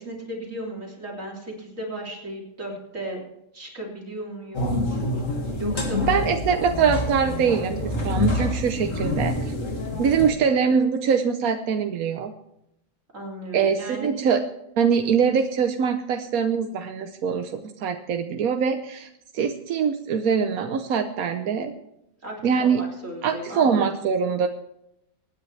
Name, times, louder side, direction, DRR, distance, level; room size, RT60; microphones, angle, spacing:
voice 1, 0.0-3.2 3.5-4.9 5.6-6.3 13.1-14.1 22.2-23.8, right 1 dB, 65° right, -2 dB, 3.7 m, -35 dB
sound 1, 4.5-10.3, left 2 dB, 65° left, 2.5 m, -27 dB
voice 2, 6.0-9.5 10.0-12.3 13.5-14.4 14.8-21.7 22.4-22.8 23.2-24.5, right 6 dB, 85° right, 5 dB, 1.3 m, -23 dB
24.5 x 10.0 x 3.3 m, 0.82 s
omnidirectional pair, 1.5 m